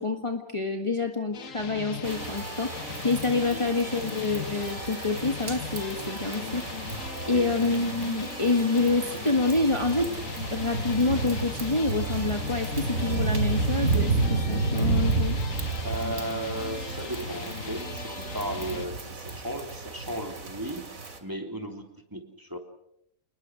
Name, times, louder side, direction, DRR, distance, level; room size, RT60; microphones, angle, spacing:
voice 1, 0.0-6.9 7.3-10.1 10.5-15.4, left 3 dB, 20° left, 4 dB, 1.7 m, -27 dB
sound 1, 1.3-18.9, left 6 dB, 70° left, 1.7 m, -39 dB
sound 2, 2.0-21.2, right 3 dB, 85° right, 2.9 m, -31 dB
voice 2, 7.2-7.6 15.8-20.9 21.2-22.6, right 1 dB, 15° right, 4 dB, 3.2 m, -35 dB
29.5 x 20.5 x 6.4 m, 0.75 s
omnidirectional pair, 1.4 m